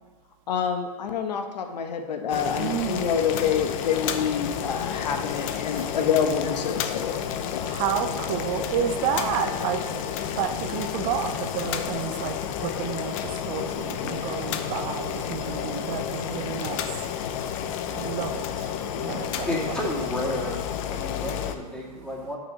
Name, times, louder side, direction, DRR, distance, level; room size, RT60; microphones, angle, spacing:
voice 1, 0.5-7.1 7.5-7.7, left 7 dB, 80° left, 5 dB, 1.2 m, -27 dB
Boiling, 2.3-21.5, left 9 dB, 50° left, 0.7 m, -31 dB
voice 2, 2.6-3.1 5.8-5.9 7.6-19.5, right 8 dB, 45° right, 6 dB, 0.7 m, -31 dB
sound 1, 7.9-13.2, left 4 dB, 30° left, 1.6 m, -47 dB
voice 3, 19.1-20.6 20.9-22.4, equal, 5° left, -4 dB, 2.2 m, -32 dB
6.2 x 6.0 x 6.5 m, 1.3 s
hypercardioid pair, 130°, 21 cm